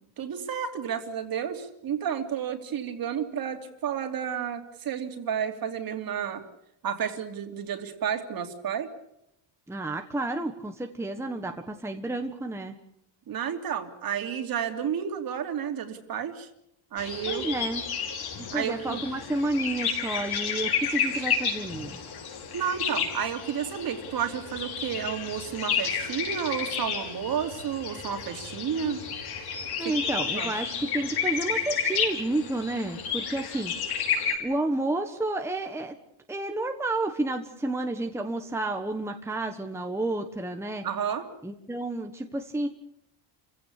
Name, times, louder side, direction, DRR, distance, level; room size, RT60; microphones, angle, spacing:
voice 1, 0.2-6.4 6.8-8.9 13.3-16.5 16.9-17.5 18.5-19.0 22.5-29.0 29.8-30.5 40.8-41.3, right 8 dB, 45° right, 7 dB, 3.0 m, -31 dB
voice 2, 9.7-12.8 17.3-17.8 18.4-22.0 29.8-33.7 34.4-35.9 36.3-40.8 41.4-42.7, right 2 dB, 5° right, 4 dB, 1.3 m, -31 dB
sound 1, 17.0-34.4, left 6 dB, 50° left, 5.4 m, -31 dB
29.0 x 16.5 x 8.4 m, 0.79 s
cardioid pair, 160°, 49 cm